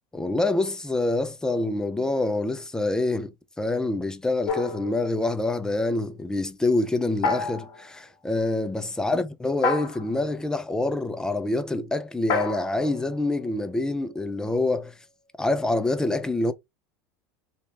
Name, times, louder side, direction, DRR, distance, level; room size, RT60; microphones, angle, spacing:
voice 1, 0.1-14.9 15.4-16.5, left 2 dB, 5° left, 0.4 m, -26 dB
sound 1, 4.5-5.6 7.2-7.9 9.6-10.3 12.3-14.1, left 4 dB, 55° left, 1.3 m, -30 dB
3.1 x 2.9 x 3.2 m
supercardioid pair, 130°, 9 cm